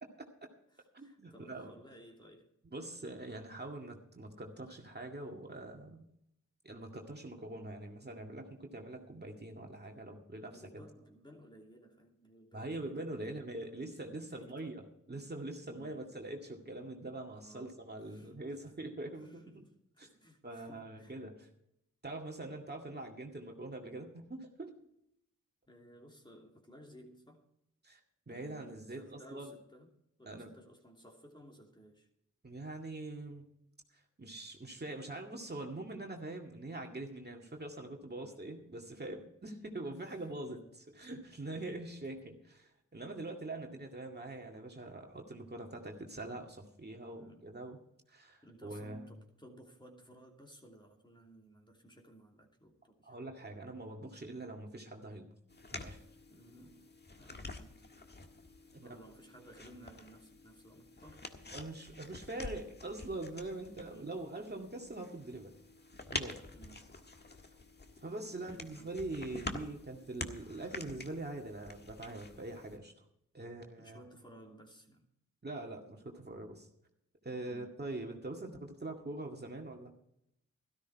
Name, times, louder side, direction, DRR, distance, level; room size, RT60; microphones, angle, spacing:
voice 1, 0.2-0.5 0.9-1.7 2.6-6.0 6.6-10.6 12.5-14.8 15.1-19.4 20.0-20.1 20.4-21.3 22.0-24.8 27.8-28.0 28.3-29.5 30.3-30.5 32.4-33.5 33.9-40.6 40.9-47.8 48.1-49.0 53.0-55.3 55.7-56.0 58.7-58.9 61.5-65.5 66.1-66.4 68.0-72.9 73.3-74.0 75.4-76.7 77.2-79.9, right 2 dB, 30° right, 2.1 m, -43 dB
voice 2, 0.7-2.5 10.5-13.4 13.8-14.7 15.7-16.1 17.4-18.4 19.2-21.2 25.7-27.4 28.3-32.1 37.5-37.6 38.1-38.6 39.9-40.6 41.5-41.8 47.1-47.5 48.4-53.2 56.3-57.9 58.7-61.3 63.9-64.1 66.5-67.0 68.4-69.0 72.5-72.7 73.8-75.1 77.5-77.9, right 1 dB, 15° left, 2.9 m, -58 dB
sound 1, 55.5-72.8, left 2 dB, 30° left, 1.6 m, -47 dB
13.5 x 13.0 x 4.7 m
cardioid pair, 50°, 31 cm